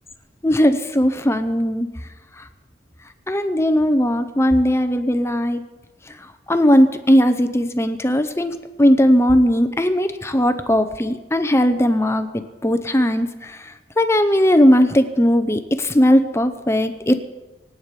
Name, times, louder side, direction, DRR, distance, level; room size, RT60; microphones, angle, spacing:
voice 1, 0.4-1.9 2.4-2.5 3.3-5.6 6.5-17.2, equal, 15° left, 9 dB, 0.7 m, -18 dB
25.0 x 9.1 x 4.9 m, 1.1 s
head